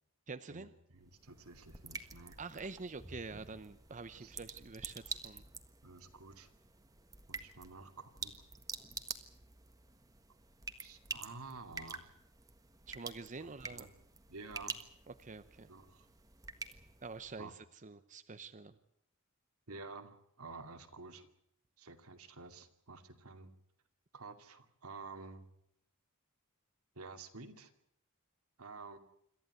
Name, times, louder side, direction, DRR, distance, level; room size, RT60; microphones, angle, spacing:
voice 1, 0.3-0.7 2.4-5.4 12.9-13.9 15.1-15.7 17.0-18.8, right 4 dB, 35° right, 11 dB, 0.8 m, -47 dB
sound 1, 0.9-17.4, right 4 dB, 15° right, 1.5 m, -48 dB
voice 2, 0.9-2.4 4.2-4.3 5.8-6.5 7.3-8.3 10.8-12.1 13.4-13.9 14.3-14.8 15.7-16.1 17.4-17.5 19.7-21.3 21.8-23.5 24.1-25.5 26.9-27.7 28.6-29.0, right 3 dB, 80° right, 7 dB, 2.5 m, -50 dB
27.0 x 14.0 x 9.4 m, 0.73 s
head